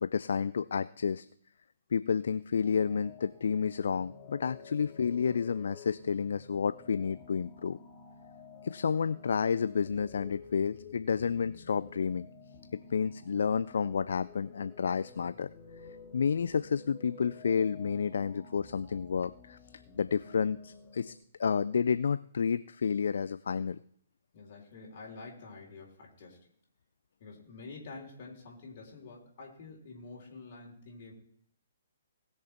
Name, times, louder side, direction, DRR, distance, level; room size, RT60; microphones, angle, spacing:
voice 1, 0.0-1.3 1.9-7.8 8.6-12.3 12.7-15.5 16.1-19.6 20.0-21.1 21.4-23.8, left 6 dB, 65° left, 15 dB, 0.4 m, -30 dB
sound 1, 2.6-21.2, left 5 dB, 25° left, 2.3 m, -52 dB
voice 2, 24.3-26.5 27.2-31.1, left 3 dB, 50° left, -2 dB, 3.4 m, -48 dB
19.0 x 6.6 x 4.4 m, 0.65 s
figure-of-eight pair, 125°, 0 cm